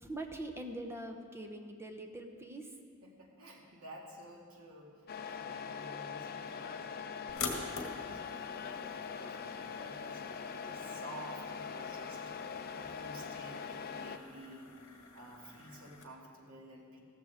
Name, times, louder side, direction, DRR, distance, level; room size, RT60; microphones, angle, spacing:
voice 1, 0.0-2.8, right 1 dB, 10° right, 4 dB, 0.9 m, -43 dB
voice 2, 3.0-12.2 12.7-14.7 15.1-17.0, right 1 dB, 90° right, -1 dB, 2.1 m, -52 dB
Truck, 5.1-14.2, left 6 dB, 45° left, 0.6 m, -42 dB
sound 1, 7.3-16.0, left 4 dB, 65° left, 1.6 m, -46 dB
15.0 x 13.5 x 3.6 m, 2.1 s
head